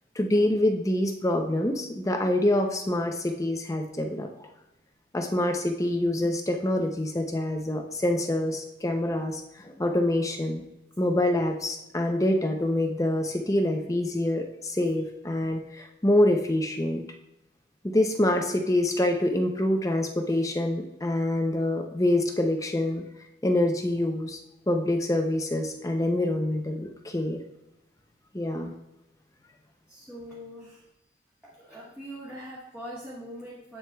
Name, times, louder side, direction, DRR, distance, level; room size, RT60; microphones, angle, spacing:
voice 1, 0.2-4.5 5.1-10.6 11.0-17.0 17.8-23.0 23.4-24.4 24.7-27.4 28.3-28.7, left 1 dB, 15° left, 4 dB, 0.5 m, -26 dB
voice 2, 29.9-30.8 31.4-33.8, equal, 5° right, -8 dB, 1.2 m, -42 dB
8.4 x 7.4 x 2.3 m, 0.90 s
head